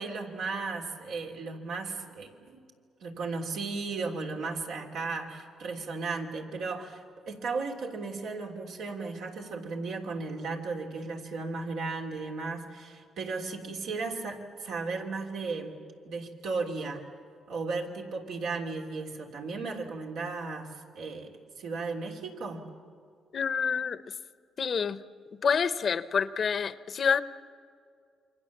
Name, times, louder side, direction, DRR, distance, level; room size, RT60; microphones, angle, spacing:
voice 1, 0.0-2.6 3.0-15.8 16.0-17.1 17.5-22.7, right 4 dB, 80° right, 1 dB, 3.1 m, -35 dB
voice 2, 23.3-24.0 24.6-25.0 25.4-27.2, left 6 dB, 50° left, 14 dB, 0.8 m, -27 dB
28.0 x 24.5 x 7.3 m, 2.3 s
cardioid pair, 90°, 0 cm